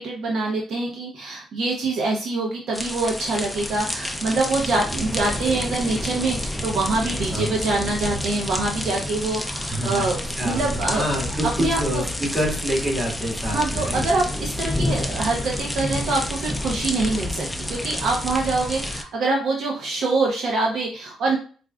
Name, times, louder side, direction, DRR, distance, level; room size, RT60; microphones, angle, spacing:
voice 1, 0.0-11.1 11.6-12.0 13.5-21.4, right 3 dB, 70° right, -1 dB, 0.8 m, -25 dB
sound 1, 2.7-19.0, left 1 dB, 5° left, 0.4 m, -29 dB
voice 2, 9.7-10.1 10.4-10.7 10.9-14.1, equal, 25° right, -2 dB, 1.7 m, -27 dB
4.6 x 2.5 x 2.3 m, 0.39 s
cardioid pair, 90°, 0 cm